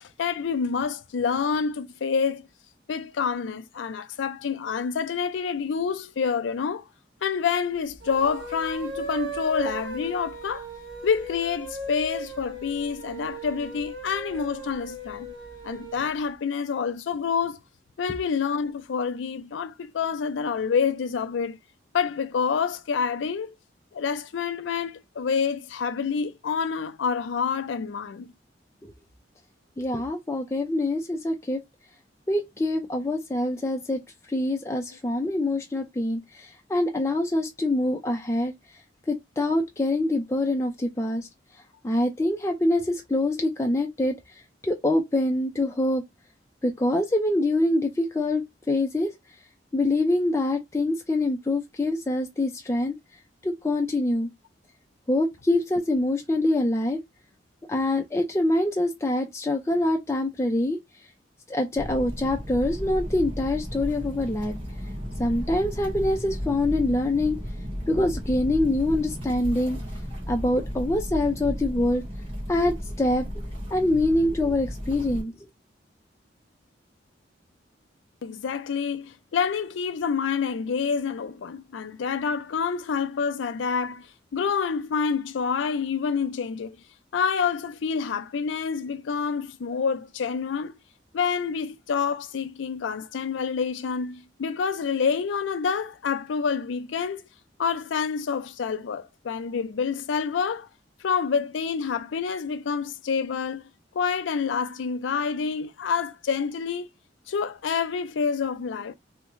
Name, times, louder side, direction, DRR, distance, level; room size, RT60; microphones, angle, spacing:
voice 1, 0.0-2.4 2.9-6.8 7.2-10.7 11.0-15.3 15.6-17.6 18.0-21.6 21.9-23.5 23.9-28.3 78.2-84.1 84.3-86.8 87.1-90.7 91.1-97.2 97.6-100.7 101.0-103.6 103.9-106.9 107.3-108.9, left 6 dB, 90° left, 0.4 m, -27 dB
sound 1, 7.9-16.1, right 1 dB, 65° right, 1.4 m, -37 dB
voice 2, 29.8-31.6 32.3-34.0 34.3-38.5 39.1-41.3 41.8-44.1 44.6-46.0 46.6-49.1 49.7-52.9 53.4-54.3 55.1-57.0 57.7-60.8 61.5-64.5 65.2-67.4 67.9-69.8 70.3-72.0 72.5-73.3 73.7-75.3, left 1 dB, 15° left, 0.4 m, -25 dB
sound 2, 61.7-75.2, equal, 30° right, 1.6 m, -34 dB
3.5 x 2.1 x 3.0 m
head